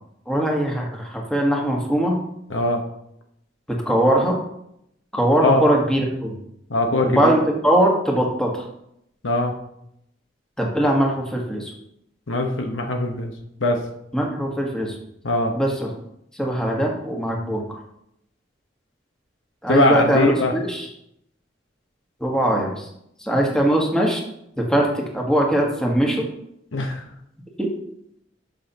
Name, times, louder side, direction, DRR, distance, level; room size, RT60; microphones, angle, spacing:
voice 1, 0.3-2.2 3.9-4.4 5.1-6.3 7.0-8.5 10.6-11.7 14.1-14.9 15.5-15.9 16.4-17.6 19.6-20.8 22.2-22.7 23.2-24.2 24.6-26.3 27.6-27.7, right 1 dB, 5° left, -1 dB, 1.4 m, -21 dB
voice 2, 2.5-2.8 5.4-5.7 6.7-7.3 9.2-9.5 12.3-13.3 13.6-13.8 15.2-15.5 19.7-20.5 26.7-27.0, left 2 dB, 90° left, 3 dB, 1.1 m, -21 dB
12.0 x 5.7 x 2.9 m, 0.77 s
head